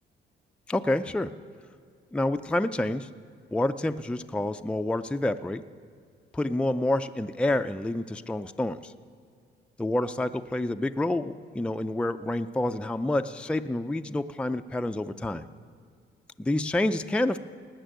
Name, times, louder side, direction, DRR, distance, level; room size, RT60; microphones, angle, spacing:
voice 1, 0.7-1.3 2.1-3.1 3.5-5.6 6.3-8.9 9.8-15.4 16.4-17.4, left 1 dB, 5° left, 8 dB, 0.4 m, -28 dB
18.0 x 6.1 x 9.1 m, 2.1 s
cardioid pair, 90°, 20 cm